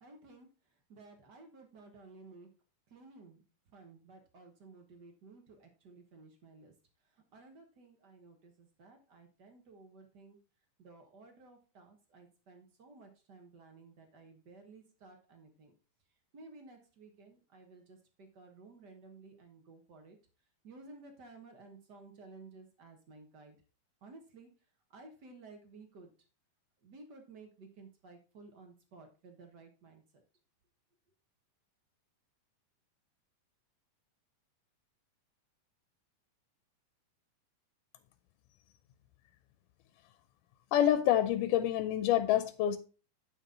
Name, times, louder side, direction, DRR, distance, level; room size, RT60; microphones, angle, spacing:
voice 1, 0.0-0.5 0.9-2.5 2.9-3.4 3.7-6.7 7.3-10.4 10.8-15.7 16.3-20.2 20.6-23.6 24.0-24.5 24.9-26.1 26.8-30.0, right 3 dB, 60° right, 1.0 m, -55 dB
voice 2, 40.7-42.8, left 11 dB, 80° left, 2.0 m, -27 dB
9.0 x 5.9 x 3.8 m
omnidirectional pair, 3.8 m